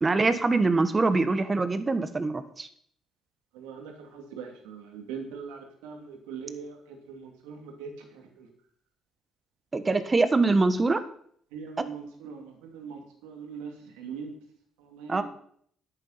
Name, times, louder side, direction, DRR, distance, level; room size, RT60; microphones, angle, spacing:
voice 1, 0.0-2.7 9.7-11.0 15.1-15.2, right 3 dB, 30° right, 11 dB, 1.3 m, -24 dB
voice 2, 3.5-6.8 7.1-7.9 8.4-8.5 11.5-13.7 14.0-14.3 14.9-15.2, right 6 dB, 85° right, 3 dB, 2.5 m, -41 dB
10.0 x 9.5 x 5.7 m, 0.63 s
hypercardioid pair, 55°, 0 cm